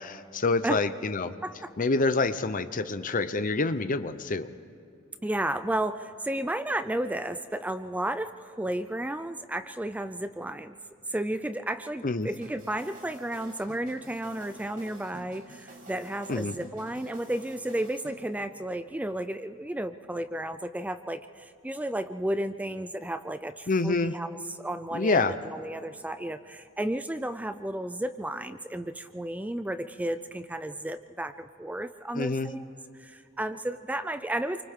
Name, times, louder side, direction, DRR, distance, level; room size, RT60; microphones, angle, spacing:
voice 1, 0.0-1.3 1.8-4.5 12.0-12.3 16.3-16.5 23.7-24.1 24.9-25.4 32.1-32.5, left 3 dB, 40° left, 11 dB, 0.8 m, -27 dB
voice 2, 1.4-1.7 5.2-10.7 11.1-32.6 33.0-34.6, right 1 dB, 5° right, 10 dB, 0.4 m, -33 dB
sound 1, 12.4-18.2, right 1 dB, 45° right, 5.2 m, -49 dB
28.5 x 24.5 x 3.7 m, 2.6 s
head